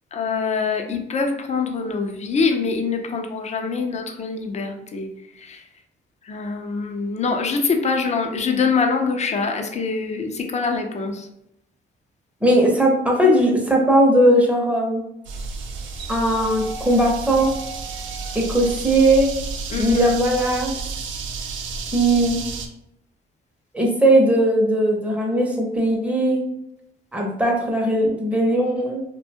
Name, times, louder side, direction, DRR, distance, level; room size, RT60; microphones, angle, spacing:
voice 1, 0.1-5.1 5.4-5.6 6.2-11.3 19.7-20.1, left 4 dB, 35° left, 4 dB, 0.5 m, -24 dB
voice 2, 12.4-15.0 16.1-17.5 18.3-19.3 19.8-20.8 21.9-22.4 23.7-26.4 27.1-29.0, right 1 dB, 5° right, 0 dB, 0.7 m, -18 dB
sound 1, 15.2-22.7, right 4 dB, 75° right, 0.5 m, -31 dB
2.5 x 2.2 x 2.7 m, 0.81 s
cardioid pair, 90°, 20 cm